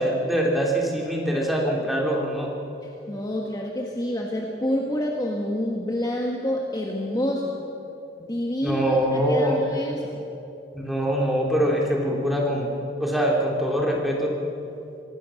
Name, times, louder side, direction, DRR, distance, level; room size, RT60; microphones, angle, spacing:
voice 1, 0.0-2.5 8.6-9.6 10.7-12.7 13.0-14.3, equal, ahead, -2 dB, 3.5 m, -23 dB
voice 2, 2.8-7.5 8.2-10.2, left 1 dB, 20° left, -1 dB, 1.6 m, -28 dB
25.5 x 19.0 x 6.5 m, 2.8 s
head